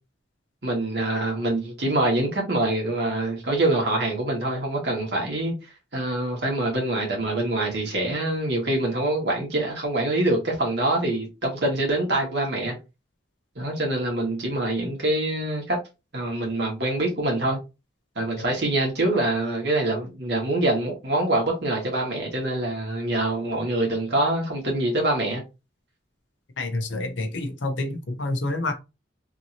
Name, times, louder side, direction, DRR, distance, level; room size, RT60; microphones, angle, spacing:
voice 1, 0.6-5.5 5.9-12.7 13.5-15.8 16.1-17.6 18.1-25.4, right 1 dB, 60° right, 1.7 m, -25 dB
voice 2, 26.6-28.7, left 2 dB, 75° left, 0.8 m, -28 dB
3.6 x 2.9 x 2.7 m
head